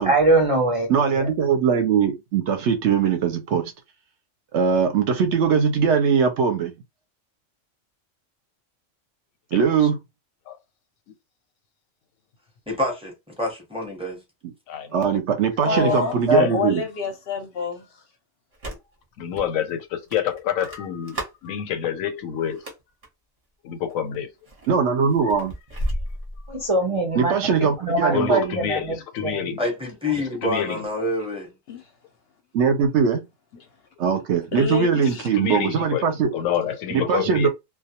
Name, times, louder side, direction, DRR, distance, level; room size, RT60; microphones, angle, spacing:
voice 1, 0.0-0.9 1.2-1.3 15.7-15.9 16.3-16.5 26.5-27.3 27.8-29.0 29.2-29.4, right 2 dB, 55° right, 0.3 m, -21 dB
voice 2, 0.9-3.7 4.5-6.7 9.5-10.0 14.9-16.8 24.7-25.5 27.1-28.4 32.5-33.2 34.0-36.3 36.9-37.5, right 6 dB, 70° right, 0.8 m, -21 dB
voice 3, 9.5-9.9 10.5-10.6 14.7-15.2 15.9-16.6 19.2-22.6 23.6-24.3 28.1-29.6 30.2-30.8 35.0-37.5, left 9 dB, 90° left, 1.0 m, -28 dB
voice 4, 12.7-14.2 29.6-31.5, left 1 dB, 5° right, 0.6 m, -27 dB
voice 5, 15.6-16.2 16.5-17.9 31.7-31.8 34.5-35.3, left 5 dB, 60° left, 0.7 m, -27 dB
sound 1, 18.5-19.0 19.4-19.5 20.1-21.5 22.4-23.1 23.8-24.1 24.5-26.7, equal, 30° right, 0.8 m, -32 dB
2.2 x 2.2 x 2.7 m
omnidirectional pair, 1.4 m